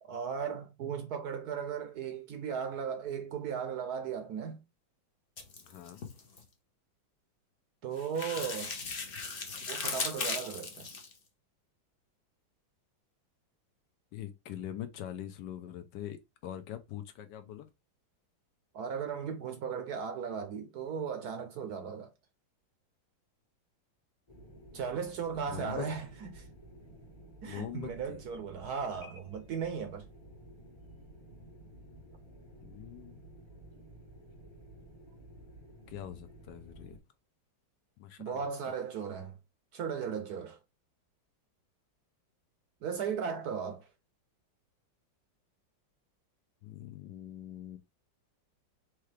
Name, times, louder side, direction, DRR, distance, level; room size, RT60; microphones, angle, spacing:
voice 1, 0.0-4.6 7.8-8.8 9.7-10.9 18.7-22.1 24.7-26.5 27.4-30.1 38.2-39.3 39.7-40.6 42.8-43.9, right 6 dB, 70° right, 1.0 m, -36 dB
sound 1, 5.4-6.4 8.0-11.1, left 4 dB, 45° left, 0.7 m, -37 dB
voice 2, 5.6-6.0 14.1-17.7 25.5-25.9 27.4-28.2 32.6-33.2 35.9-37.0 38.0-38.4 46.6-47.8, left 11 dB, 70° left, 1.1 m, -43 dB
sound 2, 24.3-37.0, right 1 dB, 20° left, 1.0 m, -53 dB
4.7 x 3.1 x 3.2 m
omnidirectional pair, 2.1 m